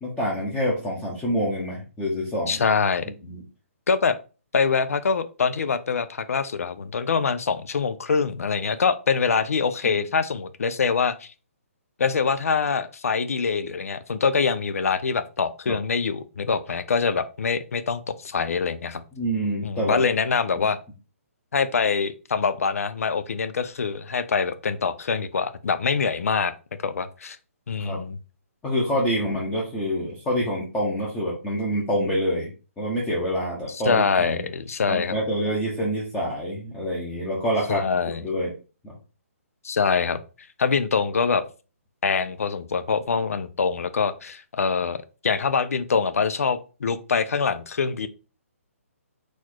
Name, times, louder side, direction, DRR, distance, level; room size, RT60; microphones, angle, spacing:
voice 1, 0.0-2.6 3.2-3.4 15.7-15.8 19.1-20.0 27.8-28.0 28.6-32.5 32.8-34.4 34.9-37.8 38.2-38.5 38.8-38.9, equal, 10° left, -6 dB, 0.8 m, -26 dB
voice 2, 2.5-3.1 3.9-4.2 4.5-11.3 12.0-19.0 19.6-20.8 21.5-26.5 26.8-27.4 27.7-28.2 33.7-35.2 37.7-38.2 39.6-40.2 40.6-41.4 42.0-48.1, left 5 dB, 80° left, 12 dB, 0.6 m, -24 dB
4.2 x 2.4 x 4.4 m, 0.33 s
hypercardioid pair, 165°, 8 cm